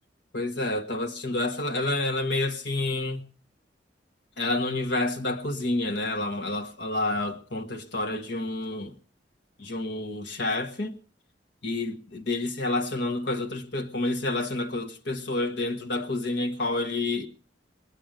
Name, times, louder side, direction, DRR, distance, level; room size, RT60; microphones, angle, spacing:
voice 1, 0.3-3.2 4.4-8.9 9.6-10.9 11.6-17.3, left 2 dB, 70° left, 1.5 m, -29 dB
21.0 x 9.0 x 6.6 m
head